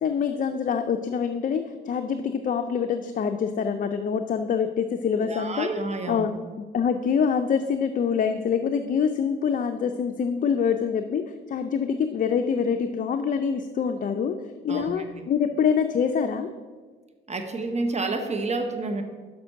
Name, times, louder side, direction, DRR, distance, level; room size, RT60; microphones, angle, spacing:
voice 1, 0.0-5.7 6.1-6.3 6.7-14.3 14.6-16.5, left 7 dB, 45° left, 7 dB, 0.5 m, -25 dB
voice 2, 5.2-6.3 14.7-15.3 17.3-19.0, right 3 dB, 35° right, 6 dB, 0.8 m, -29 dB
6.1 x 5.8 x 6.3 m, 1.4 s
cardioid pair, 90°, 20 cm